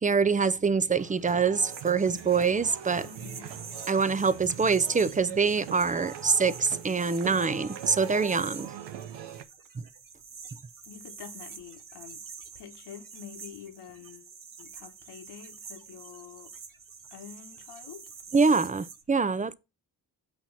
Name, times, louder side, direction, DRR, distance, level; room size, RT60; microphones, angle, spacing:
voice 1, 0.0-3.1 3.9-8.7 18.3-19.5, right 5 dB, 20° right, 0.5 m, -25 dB
sound 1, 0.9-9.4, right 9 dB, 90° right, 0.8 m, -42 dB
sound 2, 1.7-19.0, right 5 dB, 50° right, 1.2 m, -47 dB
voice 2, 3.0-3.6 10.8-12.2 12.5-14.3 14.6-16.5 17.1-18.0, left 8 dB, 70° left, 1.4 m, -47 dB
7.7 x 2.9 x 5.7 m
supercardioid pair, 55°, 42 cm